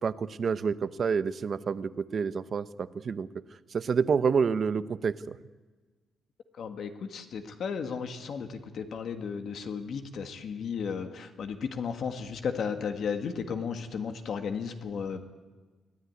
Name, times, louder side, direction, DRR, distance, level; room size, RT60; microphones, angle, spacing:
voice 1, 0.0-3.3 3.7-5.4, right 6 dB, 35° right, 15 dB, 0.7 m, -28 dB
voice 2, 6.6-15.2, left 6 dB, 50° left, 8 dB, 1.6 m, -34 dB
24.0 x 16.5 x 9.6 m, 1.3 s
cardioid pair, 180°, 0 cm